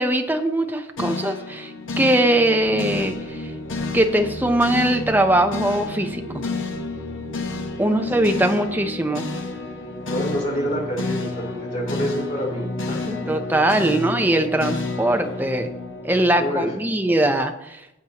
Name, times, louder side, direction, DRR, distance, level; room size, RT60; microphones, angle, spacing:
voice 1, 0.0-3.5 3.9-6.4 7.8-9.3 13.3-15.7 16.0-18.0, right 1 dB, 10° right, 5 dB, 0.7 m, -21 dB
sound 1, 1.0-17.2, left 3 dB, 75° left, 1.2 m, -30 dB
voice 2, 8.0-8.6 10.1-13.1 16.4-16.7, equal, 40° left, -3 dB, 3.3 m, -28 dB
14.5 x 7.9 x 2.9 m, 0.89 s
head